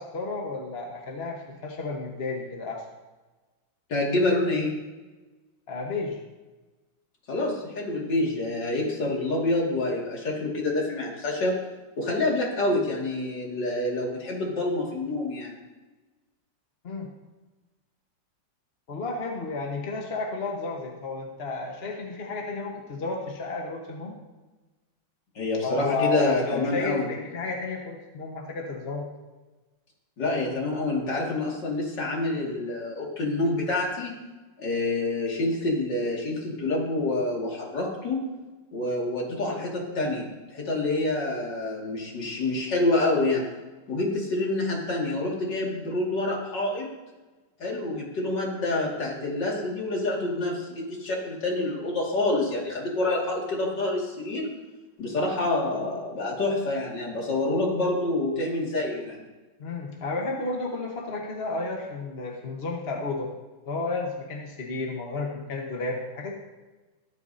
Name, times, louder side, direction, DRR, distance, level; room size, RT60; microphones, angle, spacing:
voice 1, 0.0-2.8 5.7-6.2 16.8-17.1 18.9-24.1 25.6-29.1 59.6-63.3 63.6-66.3, left 3 dB, 35° left, 0 dB, 1.3 m, -32 dB
voice 2, 3.9-4.7 7.3-11.6 12.0-15.6 25.3-27.1 30.2-34.1 34.6-38.2 38.7-43.4 43.9-46.9 47.6-54.5 55.0-59.2, left 2 dB, 65° left, -3 dB, 3.0 m, -27 dB
21.5 x 8.4 x 2.8 m, 1.2 s
omnidirectional pair, 2.1 m